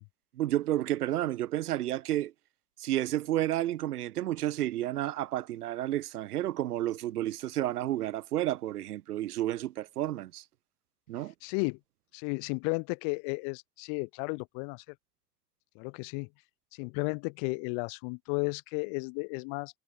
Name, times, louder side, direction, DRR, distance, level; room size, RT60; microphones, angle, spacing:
voice 1, 0.4-2.3 2.8-10.4 11.1-11.3, right 13 dB, 85° right, 0.6 m, -31 dB
voice 2, 11.4-11.8 12.1-14.8 15.8-16.3 16.7-19.8, left 40 dB or more, 65° left, 1.9 m, -33 dB
figure-of-eight pair, 55°, 44 cm